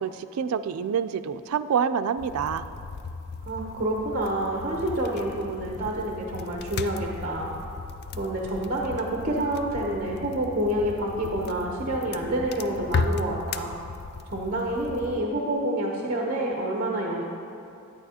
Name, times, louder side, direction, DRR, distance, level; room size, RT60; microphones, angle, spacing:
voice 1, 0.0-2.6, right 7 dB, 80° right, 11 dB, 0.3 m, -27 dB
sound 1, 2.2-15.2, left 4 dB, 50° left, 0.3 m, -36 dB
voice 2, 3.5-7.5 8.1-13.7 14.3-17.2, right 1 dB, 40° right, -1 dB, 0.7 m, -28 dB
11.0 x 9.0 x 2.8 m, 2.7 s
head